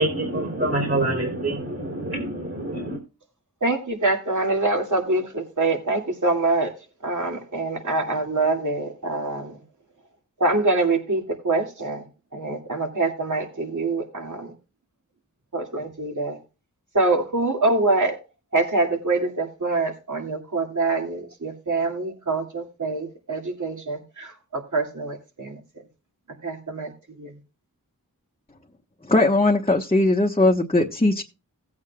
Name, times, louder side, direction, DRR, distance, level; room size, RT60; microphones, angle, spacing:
voice 1, 0.0-3.0, right 2 dB, 40° right, 3.4 m, -26 dB
voice 2, 3.6-6.7 7.0-9.6 10.4-12.1 12.3-14.5 15.5-16.4 16.9-18.2 18.5-25.6 26.4-26.9 27.2-27.3, right 2 dB, 60° right, 2.4 m, -25 dB
voice 3, 29.1-31.2, left 2 dB, 20° left, 1.2 m, -19 dB
17.0 x 8.5 x 2.3 m
wide cardioid pair, 55°, 34 cm